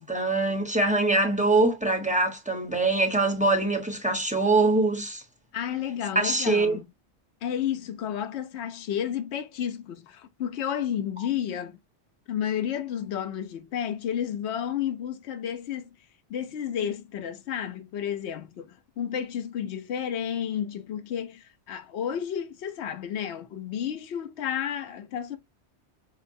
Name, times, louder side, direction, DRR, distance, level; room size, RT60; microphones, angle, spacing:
voice 1, 0.0-5.2 6.1-6.8, right 2 dB, 5° right, 0.8 m, -23 dB
voice 2, 5.5-6.8 7.4-11.8 12.3-15.9 16.3-25.4, left 9 dB, 75° left, 0.9 m, -31 dB
5.7 x 2.1 x 2.6 m
omnidirectional pair, 1.2 m